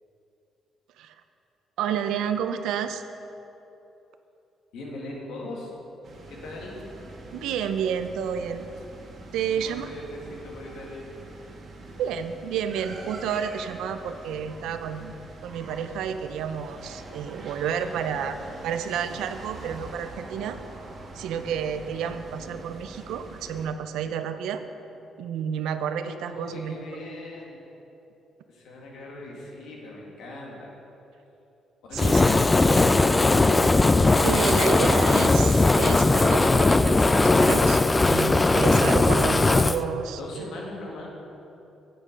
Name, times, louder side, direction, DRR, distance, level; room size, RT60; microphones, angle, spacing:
voice 1, 1.8-3.0 7.3-8.7 9.3-9.9 12.0-15.1 15.4-18.4 18.6-20.6 21.1-24.6 25.2-26.8 31.9-32.4 34.2-37.0 37.2-40.4, right 8 dB, 90° right, 9 dB, 0.5 m, -30 dB
voice 2, 4.7-5.7 6.3-6.8 9.4-11.1 18.0-18.2 26.0-27.6 28.5-30.7 31.9-32.2 40.2-41.1, left 2 dB, 85° left, -2 dB, 2.1 m, -40 dB
sound 1, 6.0-23.7, right 2 dB, 55° right, 1.6 m, -43 dB
Fire, 32.0-39.8, left 2 dB, 20° left, 0.3 m, -19 dB
10.0 x 7.6 x 5.2 m, 2.9 s
cardioid pair, 90°, 0 cm